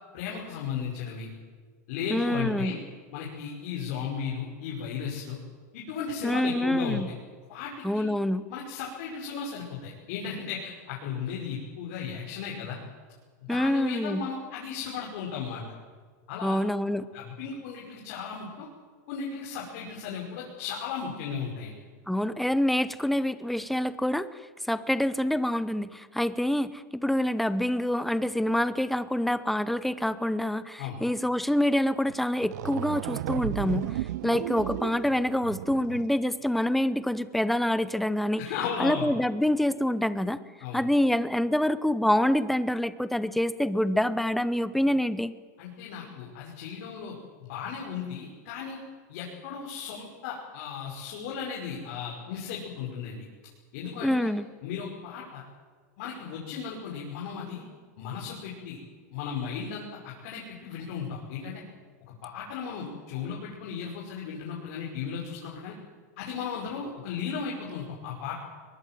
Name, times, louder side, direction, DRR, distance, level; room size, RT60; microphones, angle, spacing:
voice 1, 0.1-1.3 1.9-2.8 3.1-5.4 5.7-7.0 7.5-8.1 8.5-12.8 13.5-15.6 16.3-16.5 17.1-18.7 19.1-21.7 30.8-31.0 38.4-39.1 40.6-40.8 45.6-47.1 47.5-48.8 49.1-53.3 53.7-54.3 54.6-55.4 56.0-57.6 58.0-58.8 59.1-61.6 62.2-65.7 66.2-68.3, left 6 dB, 60° left, -4 dB, 5.7 m, -35 dB
voice 2, 2.1-2.8 6.2-7.1 7.8-8.4 13.5-14.3 16.4-17.1 22.1-24.4 24.7-34.0 34.2-38.5 38.8-40.4 40.7-45.3 54.0-54.5, left 1 dB, ahead, 14 dB, 0.8 m, -26 dB
sound 1, 32.1-32.2 32.4-36.2, right 14 dB, 75° right, 0.6 m, -34 dB
22.5 x 21.0 x 7.7 m, 1.5 s
supercardioid pair, 150°, 9 cm